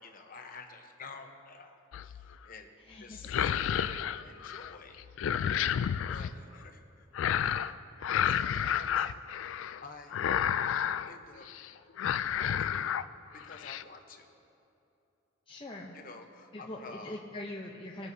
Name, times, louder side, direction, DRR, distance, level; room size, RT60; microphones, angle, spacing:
voice 1, 0.0-1.8 2.0-2.7 3.0-5.0 6.1-6.8 8.2-9.1 9.8-10.2 11.1-11.4 12.3-13.0 13.4-14.3 15.9-17.2, left 4 dB, 45° left, 4 dB, 0.9 m, -49 dB
sound 1, 1.9-2.3 3.1-4.7 5.0-6.3 7.1-7.7 8.0-9.8 10.1-11.1 11.5-11.7 12.0-13.0 13.4-13.8, left 9 dB, 70° left, 0.3 m, -31 dB
voice 2, 2.8-3.2 15.5-16.0 16.5-18.1, left 1 dB, 25° left, -2 dB, 0.6 m, -42 dB
21.5 x 7.8 x 2.7 m, 2.7 s
head